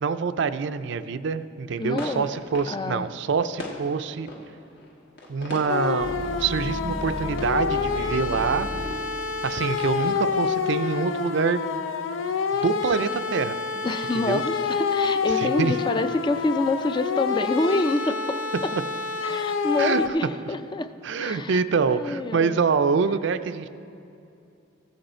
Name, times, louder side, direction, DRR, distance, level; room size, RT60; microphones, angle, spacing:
voice 1, 0.0-4.3 5.3-8.7 9.4-11.6 12.6-13.6 14.3-14.4 15.3-15.8 19.8-20.1 21.0-23.7, right 5 dB, 65° right, 12 dB, 0.4 m, -25 dB
sound 1, 1.8-8.6, left 2 dB, 60° left, 1.4 m, -41 dB
voice 2, 1.8-2.3 2.7-3.2 13.8-18.7 19.2-20.9 21.2-21.6 21.9-22.6, left 2 dB, 25° left, 11 dB, 0.3 m, -27 dB
sound 2, 5.7-20.1, left 5 dB, 90° left, 0.5 m, -28 dB
sound 3, 6.0-11.1, left 1 dB, 45° left, 1.4 m, -35 dB
14.5 x 7.9 x 4.3 m, 2.6 s
head